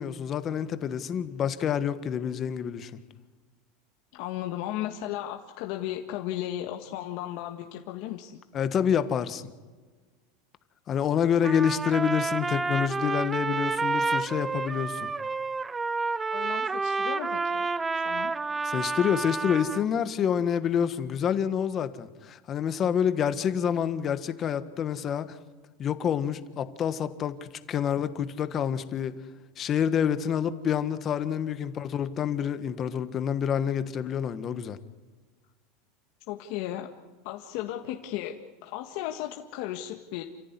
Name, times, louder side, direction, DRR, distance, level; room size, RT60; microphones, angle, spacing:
voice 1, 0.0-2.9 8.5-9.4 10.9-15.1 18.6-25.4 25.8-29.1 29.6-34.8, left 8 dB, 30° left, 11 dB, 1.5 m, -27 dB
voice 2, 4.1-8.4 16.3-17.7 18.0-18.3 36.3-36.9 37.2-38.3 38.6-40.2, left 13 dB, 60° left, 3 dB, 1.7 m, -35 dB
Trumpet, 11.4-19.8, right 4 dB, 15° right, 0.7 m, -29 dB
29.0 x 15.5 x 9.8 m, 1.4 s
supercardioid pair, 140°, 0 cm